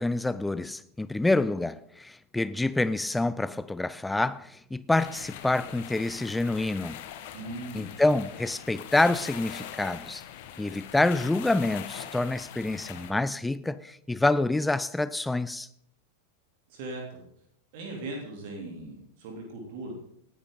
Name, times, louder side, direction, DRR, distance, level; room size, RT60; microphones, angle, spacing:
voice 1, 0.0-7.0 7.7-10.2 10.6-15.7, left 2 dB, 5° left, 0.4 m, -27 dB
sound 1, 5.0-13.1, left 10 dB, 50° left, 1.3 m, -42 dB
voice 2, 7.3-7.9 16.7-17.2 17.7-19.9, right 2 dB, 50° right, 3.1 m, -39 dB
18.5 x 11.0 x 3.8 m
figure-of-eight pair, 90°, 0 cm